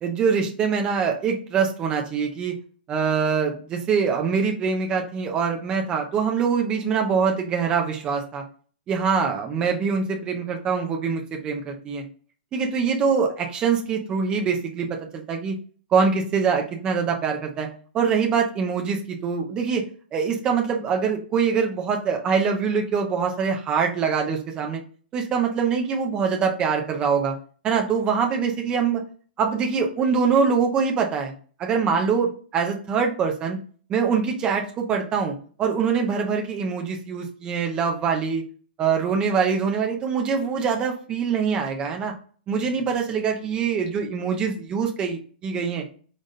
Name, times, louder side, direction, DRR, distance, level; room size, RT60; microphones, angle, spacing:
voice 1, 0.0-2.6 2.9-8.4 8.9-12.0 12.5-15.5 15.9-19.8 20.1-24.8 25.1-27.3 27.6-29.0 29.4-31.3 31.6-33.6 33.9-38.4 38.8-42.1 42.5-45.8, right 6 dB, 15° right, 2 dB, 0.7 m, -24 dB
4.0 x 3.5 x 3.8 m, 0.41 s
hypercardioid pair, 165°, 6 cm